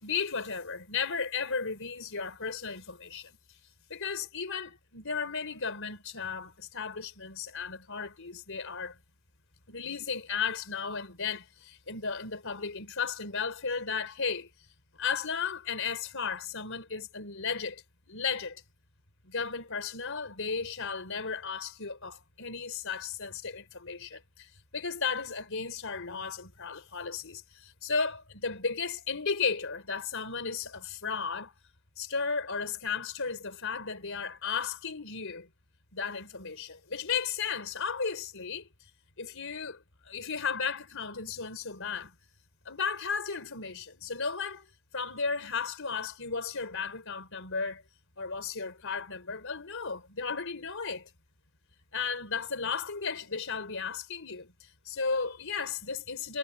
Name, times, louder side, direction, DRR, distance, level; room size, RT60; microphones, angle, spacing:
voice 1, 0.0-3.4 3.9-9.0 9.7-14.5 15.0-18.6 19.2-31.5 32.0-35.5 35.9-38.7 39.2-42.1 42.6-44.7 44.9-47.8 48.2-51.1 51.9-56.4, left 5 dB, 65° left, 4.6 m, -34 dB
head